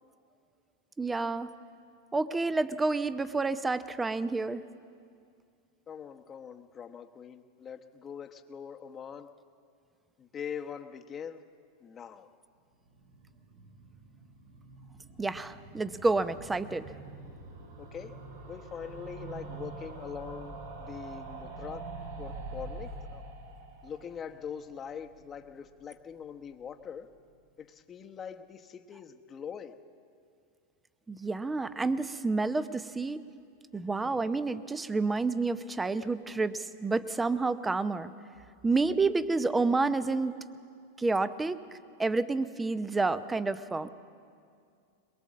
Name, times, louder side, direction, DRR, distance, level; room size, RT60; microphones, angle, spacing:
voice 1, 1.0-1.5 2.1-4.6 15.2-16.9 31.1-33.2 33.7-38.1 38.6-40.4 41.0-41.6 42.0-43.9, right 3 dB, 10° right, 14 dB, 0.7 m, -29 dB
voice 2, 5.9-9.3 10.2-11.4 11.8-12.3 17.8-18.1 18.5-21.9 22.2-23.2 23.8-27.1 27.6-29.7, left 7 dB, 25° left, 6 dB, 1.0 m, -43 dB
sound 1, 12.8-25.8 26.1-26.2 26.4-26.5 26.7-26.8, right 3 dB, 85° right, 4.5 m, -45 dB
22.0 x 22.0 x 7.5 m, 2.3 s
hypercardioid pair, 125°, 0 cm